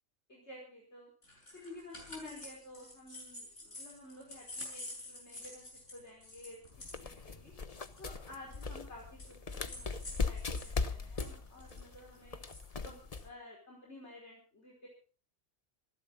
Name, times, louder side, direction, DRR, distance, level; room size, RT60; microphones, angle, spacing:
voice 1, 0.3-1.1 1.5-5.6 5.9-6.6 6.9-7.5 8.0-12.4 12.8-14.9, left 2 dB, 65° left, -3 dB, 5.5 m, -52 dB
sound 1, 1.2-10.7 11.0-13.3, left 2 dB, 80° left, 7.2 m, -48 dB
sound 2, 6.7-13.3, left 4 dB, 35° left, 1.0 m, -39 dB
27.0 x 11.5 x 4.1 m, 0.39 s
omnidirectional pair, 1.2 m